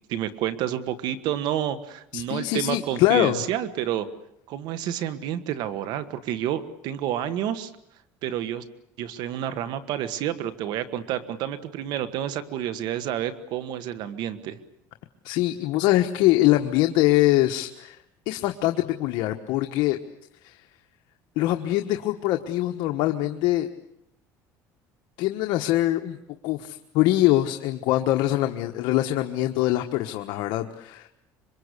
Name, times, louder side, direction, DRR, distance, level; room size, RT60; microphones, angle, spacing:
voice 1, 0.1-4.1 4.5-7.7 8.2-8.6 9.0-14.6, right 11 dB, 70° right, 12 dB, 1.6 m, -29 dB
voice 2, 2.1-3.4 15.2-18.0 18.3-20.0 20.4-20.6 21.4-23.7 25.2-26.2 26.4-31.1, left 15 dB, 75° left, 5 dB, 1.3 m, -23 dB
26.0 x 23.5 x 8.3 m, 0.80 s
cardioid pair, 125°, 8 cm